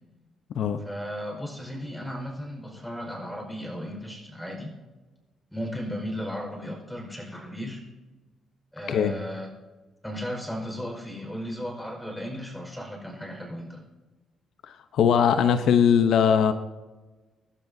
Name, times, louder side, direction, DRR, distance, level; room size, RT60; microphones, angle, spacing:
voice 1, 0.8-4.7 5.5-7.8 8.7-9.5 10.0-13.8, equal, 5° left, 3 dB, 5.0 m, -35 dB
voice 2, 14.7-16.5, left 7 dB, 75° left, 9 dB, 0.9 m, -20 dB
24.5 x 12.0 x 2.8 m, 1.2 s
cardioid pair, 90°, 0 cm